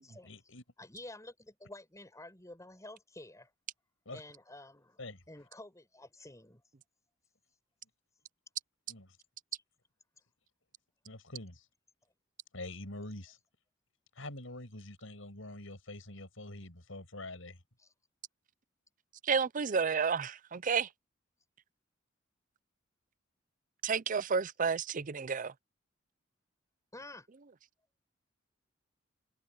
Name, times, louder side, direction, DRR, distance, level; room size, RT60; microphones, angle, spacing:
voice 1, 0.2-0.6 4.0-4.2 5.0-5.2 8.9-9.1 11.0-11.7 12.5-13.4 14.1-17.6, left 2 dB, 85° left, 6.2 m, -45 dB
voice 2, 0.8-3.5 4.1-5.0 5.3-6.6 17.8-17.9 26.9-27.3, left 2 dB, 15° left, 5.8 m, -50 dB
voice 3, 19.2-20.9 23.8-25.5, right 6 dB, 40° right, 0.5 m, -31 dB
head